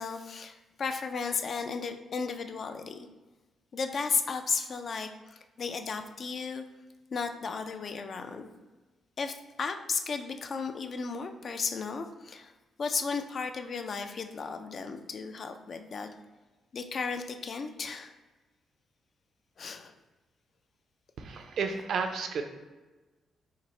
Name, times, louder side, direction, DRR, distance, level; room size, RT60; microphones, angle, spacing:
voice 1, 0.0-3.1 3.7-6.6 7.1-8.5 9.2-12.5 12.8-16.1 16.7-18.2 19.6-19.9, left 5 dB, 40° left, 7 dB, 0.3 m, -34 dB
voice 2, 21.2-22.4, right 5 dB, 60° right, 5 dB, 0.5 m, -32 dB
5.6 x 2.1 x 4.2 m, 1.2 s
cardioid pair, 160°, 0 cm